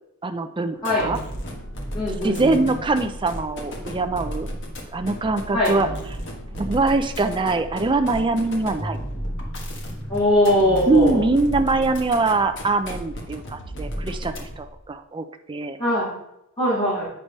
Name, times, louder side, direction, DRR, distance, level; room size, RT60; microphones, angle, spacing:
voice 1, 0.2-1.2 2.2-4.5 4.9-5.9 6.5-9.0 10.9-15.8, right 3 dB, 20° right, 8 dB, 0.4 m, -23 dB
sound 1, 0.8-14.8, equal, 55° left, 1.4 m, -33 dB
voice 2, 1.9-2.6 5.5-5.7 10.1-11.2 15.8-16.1 16.6-17.0, left 1 dB, 25° left, -8 dB, 2.1 m, -21 dB
8.7 x 3.4 x 5.2 m, 0.82 s
head